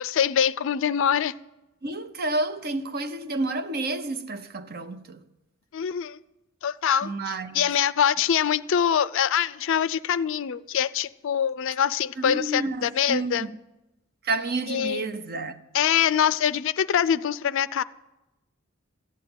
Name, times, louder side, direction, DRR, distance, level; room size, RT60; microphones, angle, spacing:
voice 1, 0.0-1.3 5.7-6.2 6.6-7.1 7.5-13.5 14.7-15.1 15.7-17.8, left 8 dB, 65° left, 0.4 m, -24 dB
voice 2, 1.8-5.2 7.0-7.6 12.2-13.5 14.2-15.6, right 2 dB, 50° right, 0.8 m, -30 dB
14.0 x 9.4 x 8.0 m
head